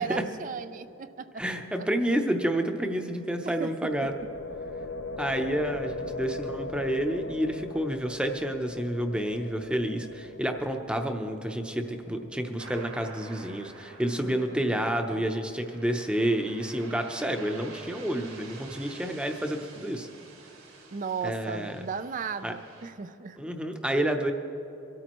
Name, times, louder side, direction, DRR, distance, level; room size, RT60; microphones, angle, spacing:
voice 1, 0.0-1.4 3.6-4.1 14.2-15.3 20.9-23.4, right 5 dB, 35° right, 12 dB, 0.4 m, -36 dB
voice 2, 1.4-4.1 5.2-20.1 21.2-21.8 22.4-22.5 23.4-24.3, right 1 dB, 5° right, 4 dB, 0.7 m, -29 dB
sound 1, 3.8-13.7, left 3 dB, 65° left, 0.6 m, -40 dB
sound 2, 12.6-22.9, right 4 dB, 70° right, 2.2 m, -49 dB
24.0 x 13.0 x 3.1 m, 2.9 s
head